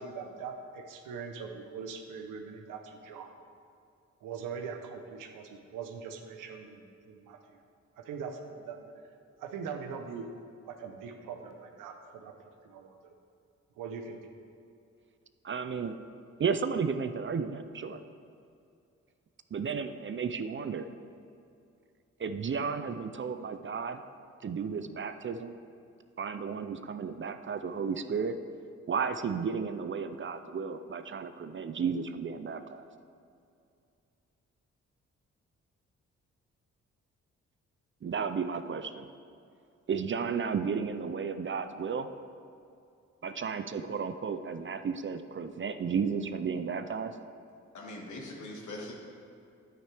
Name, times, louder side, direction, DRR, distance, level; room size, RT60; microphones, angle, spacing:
voice 1, 0.0-3.3 4.2-7.4 8.0-8.8 9.4-10.3 10.7-12.3 12.6-13.1 13.8-14.2, right 6 dB, 90° right, 5 dB, 0.8 m, -41 dB
voice 2, 15.4-16.0 16.4-18.0 19.5-20.9 22.2-24.0 24.4-25.5 26.2-28.4 28.9-32.9 38.0-39.1 39.9-42.1 43.2-47.1, right 6 dB, 40° right, 10 dB, 0.5 m, -33 dB
voice 3, 47.7-48.9, left 2 dB, 70° left, -1 dB, 1.7 m, -41 dB
9.4 x 8.8 x 3.4 m, 2.5 s
supercardioid pair, 50°, 31 cm